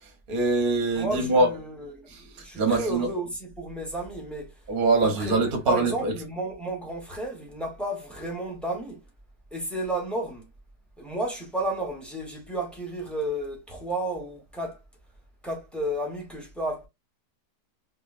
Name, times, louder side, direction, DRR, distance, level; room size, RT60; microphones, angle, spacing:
voice 1, 0.0-1.5 2.1-3.1 4.7-6.1, right 3 dB, 45° right, 0.7 m, -24 dB
voice 2, 0.9-4.5 5.0-9.0 9.5-10.5 11.0-14.8 15.4-16.9, right 1 dB, ahead, 0.6 m, -32 dB
3.8 x 2.4 x 2.4 m
omnidirectional pair, 1.8 m